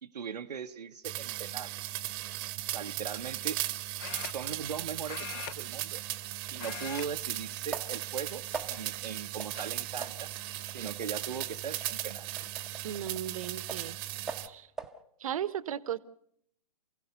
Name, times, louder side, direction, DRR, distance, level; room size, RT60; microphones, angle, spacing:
voice 1, 0.0-1.7 2.7-3.6 4.2-6.0 6.5-10.3 10.7-12.3, right 7 dB, 75° right, 0.8 m, -39 dB
sound 1, 1.0-14.5, right 15 dB, 35° right, 1.1 m, -37 dB
sound 2, 2.1-2.3 4.0-4.8 5.0-6.3 6.5-7.1 7.4-7.7 8.4-9.0 9.5-9.6 11.1-11.2 11.5-11.9, left 10 dB, 30° left, 0.8 m, -43 dB
sound 3, 6.6-6.7 7.7-8.2 8.5-9.0 9.4-9.6 10.0-14.0 14.3-15.0, right 4 dB, ahead, 1.0 m, -44 dB
voice 2, 12.8-13.9 14.4-14.7 15.2-16.0, right 10 dB, 55° right, 1.0 m, -35 dB
28.5 x 16.5 x 6.8 m
hypercardioid pair, 130°, 21 cm